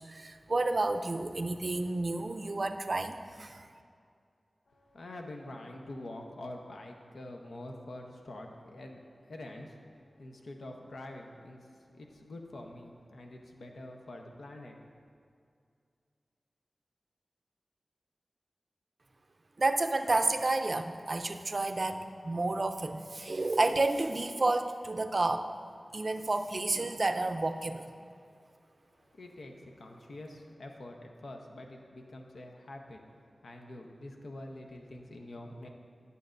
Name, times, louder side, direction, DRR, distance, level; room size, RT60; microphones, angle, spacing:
voice 1, 0.1-3.7 19.6-25.5 25.9-27.9, right 2 dB, 50° right, 8 dB, 0.4 m, -30 dB
voice 2, 4.7-15.0 28.9-35.7, left 1 dB, 90° left, 2 dB, 0.7 m, -46 dB
11.5 x 6.7 x 2.5 m, 2.3 s
wide cardioid pair, 60°, 0 cm